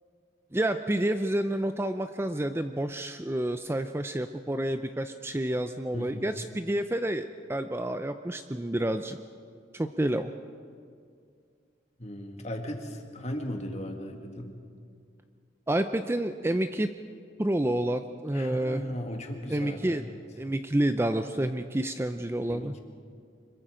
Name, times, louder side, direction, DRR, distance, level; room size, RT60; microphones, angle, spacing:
voice 1, 0.5-9.2 9.7-10.3 15.7-16.9 17.4-18.8 19.5-20.0 20.4-22.8, right 1 dB, 15° right, 9 dB, 0.5 m, -29 dB
voice 2, 5.9-6.2 12.0-14.6 18.3-20.2 22.5-22.8, equal, 35° left, 4 dB, 1.9 m, -37 dB
25.5 x 22.5 x 5.1 m, 2.3 s
head